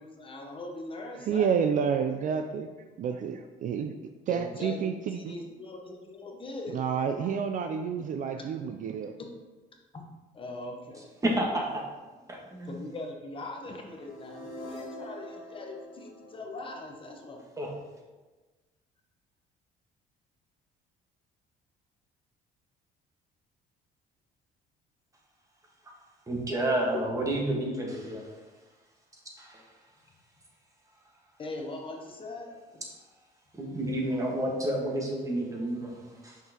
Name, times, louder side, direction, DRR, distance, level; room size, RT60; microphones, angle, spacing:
voice 1, 0.0-1.6 4.3-6.8 9.9-10.0 10.3-11.1 12.4-17.4 26.9-27.2 31.4-32.8, left 2 dB, 30° left, 1 dB, 0.9 m, -41 dB
voice 2, 1.2-2.7 3.0-3.9 4.3-5.3 6.7-9.1, right 7 dB, 50° right, 7 dB, 0.4 m, -29 dB
voice 3, 11.2-11.8 12.3-12.8 17.6-17.7 26.3-28.3 29.4-29.7 33.5-36.4, right 1 dB, 20° right, -1 dB, 1.4 m, -30 dB
sound 1, 13.6-17.6, left 1 dB, 75° left, 1.7 m, -45 dB
5.9 x 5.6 x 2.9 m, 1.2 s
cardioid pair, 110°, 17 cm